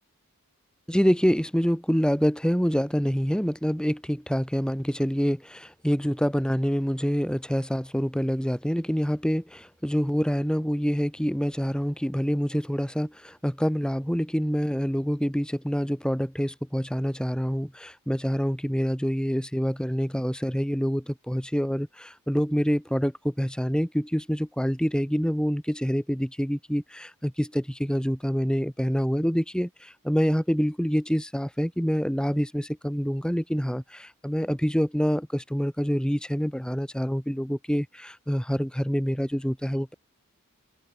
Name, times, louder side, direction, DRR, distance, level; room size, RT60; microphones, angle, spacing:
voice 1, 0.9-39.9, equal, 5° left, 2.9 m, -26 dB
head